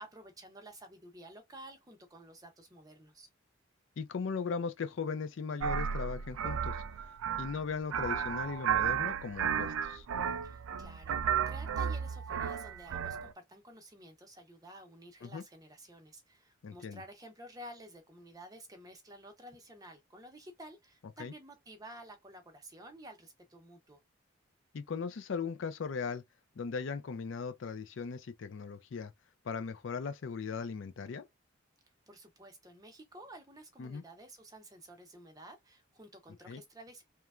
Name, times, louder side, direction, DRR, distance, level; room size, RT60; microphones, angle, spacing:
voice 1, 0.0-3.3 10.4-24.0 32.1-37.0, right 1 dB, 20° right, 0.6 m, -52 dB
voice 2, 4.0-6.8 7.4-10.1 15.2-15.4 16.6-17.0 21.2-21.3 24.7-26.2 26.6-29.1 29.4-31.3 33.8-34.0 36.5-36.6, left 5 dB, 65° left, 0.4 m, -38 dB
sound 1, 5.6-13.3, right 8 dB, 85° right, 0.4 m, -33 dB
3.0 x 2.2 x 2.4 m
head